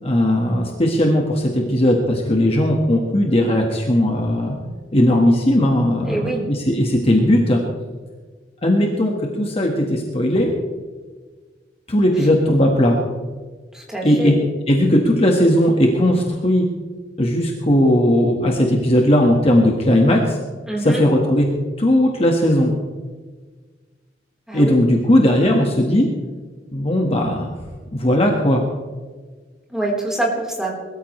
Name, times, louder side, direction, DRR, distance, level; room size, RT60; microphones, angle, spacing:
voice 1, 0.0-4.6 4.9-7.6 8.6-10.5 11.9-13.0 14.0-14.3 14.7-16.6 17.2-20.4 20.8-21.5 21.8-22.7 24.5-26.1 26.7-27.5 27.9-28.6, left 1 dB, 35° left, 1 dB, 1.5 m, -17 dB
voice 2, 6.0-6.4 12.2-12.3 13.7-14.4 20.7-21.0 24.5-24.7 25.4-25.7 29.7-30.7, right 2 dB, 5° right, -4 dB, 3.8 m, -25 dB
21.0 x 14.0 x 3.2 m, 1.4 s
head